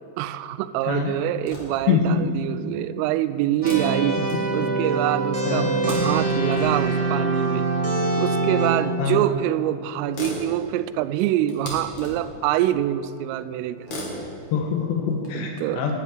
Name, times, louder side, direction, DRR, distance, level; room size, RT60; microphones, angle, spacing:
voice 1, 0.2-7.7 8.2-13.9 15.3-15.9, right 13 dB, 90° right, 13 dB, 3.2 m, -25 dB
sound 1, 1.3-2.0 3.5-4.9 5.5-6.9 8.1-8.2 9.2-9.3 9.6-9.7 9.9-12.5 13.7-15.3, left 1 dB, 45° left, 3.3 m, -37 dB
voice 2, 1.9-2.4 4.6-4.7 5.5-5.7 9.0-9.2 14.5-15.9, left 6 dB, 70° left, 2 dB, 3.0 m, -24 dB
sound 2, 3.6-8.7, right 3 dB, 15° right, 1.0 m, -24 dB
11.5 x 10.5 x 9.3 m, 2.5 s
omnidirectional pair, 5.7 m